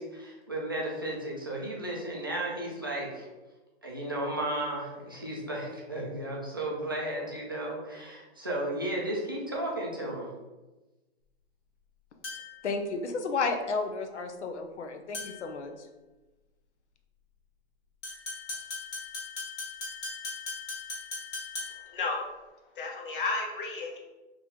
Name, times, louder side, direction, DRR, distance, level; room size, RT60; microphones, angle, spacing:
voice 1, 0.0-3.3 3.8-10.3, right 1 dB, 20° right, -3 dB, 0.4 m, -34 dB
sound 1, 12.2-12.7 15.1-15.5 18.0-22.0, left 3 dB, 25° left, 1.0 m, -39 dB
voice 2, 12.6-15.7, left 4 dB, 85° left, 6 dB, 0.7 m, -32 dB
voice 3, 22.8-24.0, left 3 dB, 50° left, 1 dB, 1.0 m, -32 dB
3.9 x 3.1 x 3.5 m, 1.1 s
hypercardioid pair, 170°, 33 cm